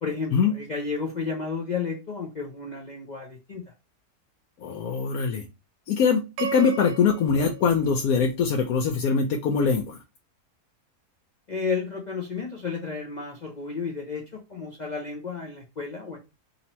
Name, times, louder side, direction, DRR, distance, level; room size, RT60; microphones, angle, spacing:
voice 1, 0.0-3.7 11.5-16.2, left 5 dB, 55° left, 0 dB, 0.5 m, -32 dB
voice 2, 4.6-5.4 5.9-10.0, left 6 dB, 75° left, 2 dB, 1.0 m, -23 dB
sound 1, 6.4-8.7, right 6 dB, 90° right, 1.2 m, -36 dB
2.9 x 2.8 x 4.2 m, 0.26 s
omnidirectional pair, 1.7 m